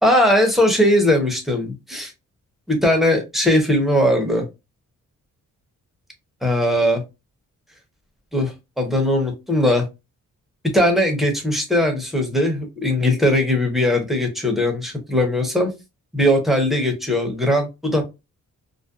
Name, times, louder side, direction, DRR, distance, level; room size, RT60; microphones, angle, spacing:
voice 1, 0.0-2.1 2.7-4.4 6.4-7.0 8.3-9.9 10.7-15.7 16.1-18.1, left 1 dB, ahead, 3 dB, 0.8 m, -19 dB
2.5 x 2.2 x 2.3 m, 0.24 s
cardioid pair, 80°, 32 cm